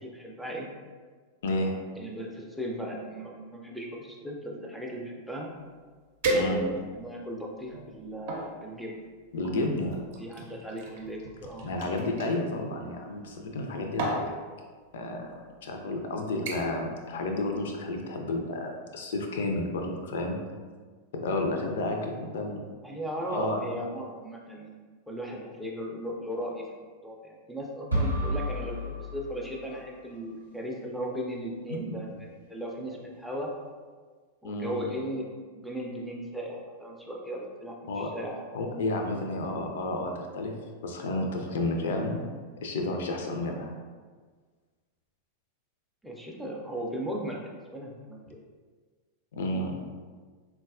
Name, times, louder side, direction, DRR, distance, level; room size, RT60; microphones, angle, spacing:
voice 1, 0.0-0.7 1.9-5.5 6.3-8.9 10.2-11.7 22.8-24.7 25.1-33.5 34.4-35.3 35.5-38.5 46.0-48.4, equal, ahead, -2 dB, 0.5 m, -37 dB
voice 2, 1.4-1.7 6.3-6.6 9.3-10.0 11.6-14.3 14.9-15.3 15.6-20.4 21.1-22.6 23.3-23.6 31.7-31.8 32.1-32.2 34.4-34.8 37.9-38.1 38.5-40.5 40.8-42.2 42.6-43.7 49.3-49.8, left 2 dB, 60° left, 3 dB, 0.4 m, -31 dB
sound 1, 5.6-5.7 6.2-7.0 7.6-8.5 9.4-12.3 13.4-13.7 14.0-14.3 15.2-15.3 15.8-16.0 16.5-16.9 17.2-17.5 17.9-18.0, right 2 dB, 55° right, 0.7 m, -33 dB
sound 2, 27.9-29.9, equal, 85° right, 0.8 m, -31 dB
3.8 x 2.3 x 2.4 m, 1.5 s
figure-of-eight pair, 90°, 0 cm